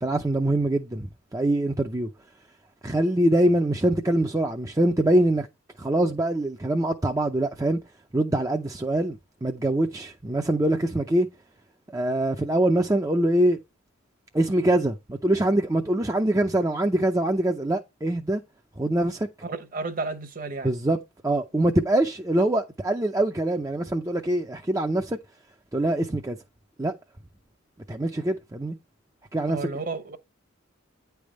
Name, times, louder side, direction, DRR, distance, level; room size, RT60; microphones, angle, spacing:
voice 1, 0.0-2.1 2.8-5.5 5.8-7.8 8.1-11.3 11.9-13.6 14.3-18.4 18.8-19.3 20.6-21.0 21.2-25.2 25.7-26.4 26.8-26.9 27.9-28.8 29.3-29.6, right 1 dB, 15° right, 0.5 m, -24 dB
voice 2, 19.4-20.7 29.5-30.2, right 3 dB, 40° right, 1.0 m, -32 dB
9.5 x 3.4 x 6.3 m
head